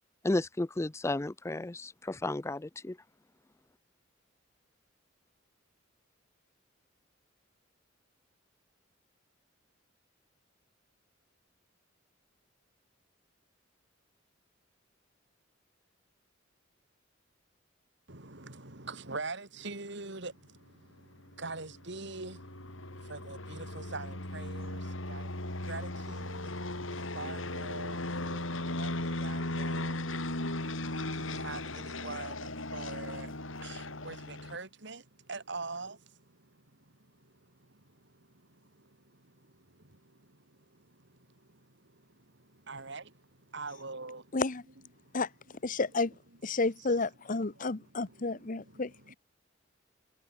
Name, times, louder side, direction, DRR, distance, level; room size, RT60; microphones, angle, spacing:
voice 1, 0.2-3.0, left 2 dB, 15° left, 0.4 m, -33 dB
voice 2, 18.1-25.4 25.6-26.5 26.8-44.4 45.0-45.2 47.5-49.2, right 3 dB, 65° right, 3.3 m, -45 dB
sound 1, 21.2-34.6, left 1 dB, 80° left, 4.8 m, -37 dB
voice 3, 44.3-44.6 45.1-45.3 45.6-46.1 46.4-49.1, left 3 dB, 40° left, 0.9 m, -31 dB
head